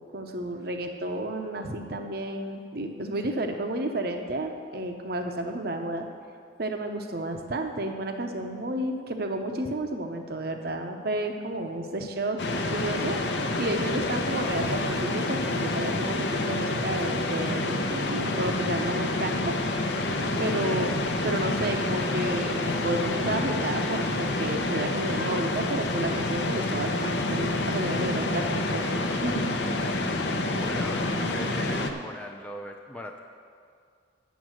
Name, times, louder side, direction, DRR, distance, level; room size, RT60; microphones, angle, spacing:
voice 1, 0.0-6.0 6.6-12.4 12.7-13.2 13.6-19.6 20.4-20.9 21.2-29.5, right 1 dB, 55° right, 5 dB, 0.8 m, -31 dB
sound 1, 12.4-31.9, left 2 dB, 70° left, 0.7 m, -28 dB
voice 2, 20.5-20.9 30.0-33.2, left 1 dB, 5° left, 2 dB, 0.5 m, -40 dB
9.2 x 7.2 x 6.4 m, 2.2 s
head